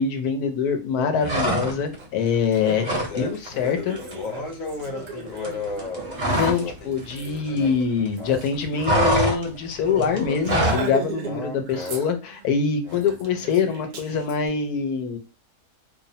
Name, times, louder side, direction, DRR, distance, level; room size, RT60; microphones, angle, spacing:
voice 1, 0.0-4.0 6.3-15.2, left 6 dB, 85° left, 6 dB, 1.1 m, -24 dB
sound 1, 1.2-2.0 2.3-3.2 3.4-3.7 4.0-6.7 7.0-8.1 8.3-10.9, right 1 dB, 40° right, 0.6 m, -25 dB
Laughter, 2.0-2.1 2.4-9.1 9.4-9.5 9.8-10.0 10.4-11.3 11.6-12.5 12.9-14.4, right 6 dB, 65° right, 0.9 m, -38 dB
voice 2, 3.0-6.1 6.5-6.9 7.2-8.5 11.2-12.0 12.8-13.2, left 4 dB, 65° left, 2 dB, 1.1 m, -35 dB
2.7 x 2.0 x 2.6 m, 0.31 s
omnidirectional pair, 1.6 m